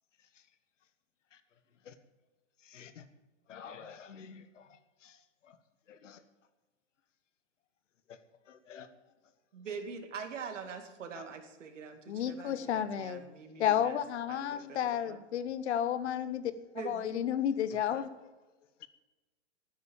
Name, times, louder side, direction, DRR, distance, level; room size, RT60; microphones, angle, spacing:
voice 1, 2.6-3.0 3.5-4.7 5.0-5.2 5.5-5.6 5.9-6.2 8.5-8.9 11.1-11.2 17.9-18.1, left 7 dB, 85° left, 12 dB, 1.5 m, -49 dB
voice 2, 9.5-14.0 14.3-15.2 16.7-17.2, right 5 dB, 90° right, 6 dB, 2.4 m, -44 dB
voice 3, 12.1-13.2 13.6-16.5 16.8-18.1, left 10 dB, 65° left, 14 dB, 1.1 m, -31 dB
12.5 x 9.5 x 7.1 m, 1.2 s
hypercardioid pair, 155°, 36 cm